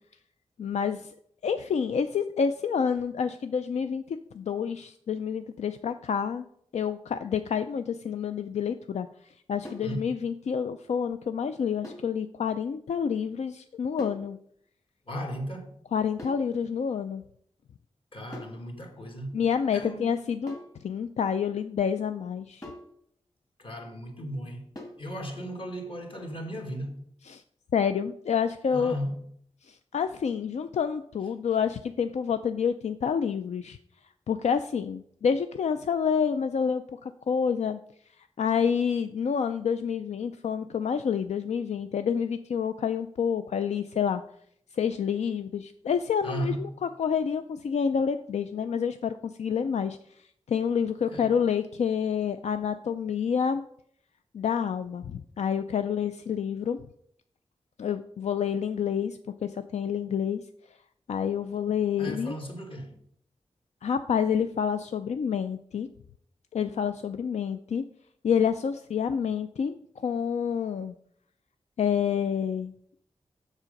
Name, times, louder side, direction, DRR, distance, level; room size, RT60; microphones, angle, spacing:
voice 1, 0.6-1.1 1.4-6.5 6.7-14.4 15.9-17.2 19.3-22.6 27.2-27.4 27.7-28.9 29.6-33.8 34.3-37.8 38.2-44.2 44.7-53.6 54.3-56.8 57.8-60.4 61.1-62.3 63.8-65.9 66.5-67.8 68.2-70.9 71.8-72.7, left 7 dB, 80° left, 0.4 m, -28 dB
sound 1, 9.6-10.0 11.8-12.1 14.0-14.3 16.2-16.5 18.3-18.6 20.5-20.8 22.6-22.9 24.8-25.1, left 1 dB, 30° left, 1.8 m, -43 dB
voice 2, 15.1-15.7 18.1-19.4 19.7-20.1 23.6-24.7 25.0-27.0 28.7-29.2 46.2-46.6 51.0-51.3 62.0-63.0, equal, 50° left, 1.7 m, -36 dB
7.3 x 6.7 x 5.1 m
wide cardioid pair, 125°, 11 cm